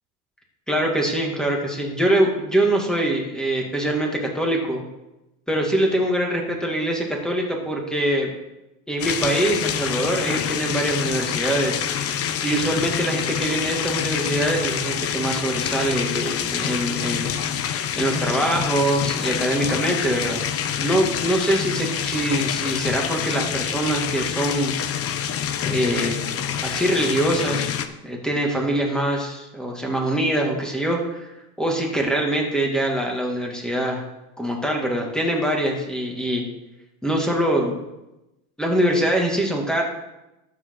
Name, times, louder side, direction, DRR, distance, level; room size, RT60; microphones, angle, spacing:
voice 1, 0.7-4.8 5.5-8.3 8.9-17.3 18.0-20.4 20.8-24.7 25.7-26.2 26.6-27.7 28.0-31.3 31.6-34.0 34.4-36.4 37.0-37.8 38.6-39.8, right 1 dB, ahead, 0 dB, 2.4 m, -23 dB
sound 1, 9.0-27.9, left 9 dB, 35° left, 0.9 m, -26 dB
12.0 x 7.9 x 3.9 m, 0.96 s
supercardioid pair, 110°, 39 cm